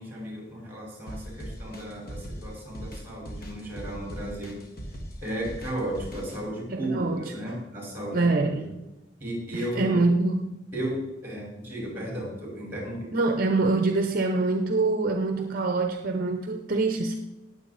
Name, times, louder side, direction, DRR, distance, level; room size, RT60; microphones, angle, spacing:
voice 1, 0.0-4.6 5.2-8.6 9.2-10.0 10.7-13.1 15.4-15.5, right 1 dB, 10° right, -2 dB, 4.9 m, -34 dB
sound 1, 1.1-6.4, equal, 50° left, 2.0 m, -39 dB
voice 2, 6.7-7.3 8.1-8.7 9.5-10.5 13.1-17.2, right 3 dB, 45° right, 5 dB, 0.7 m, -25 dB
18.5 x 7.8 x 4.2 m, 1.1 s
head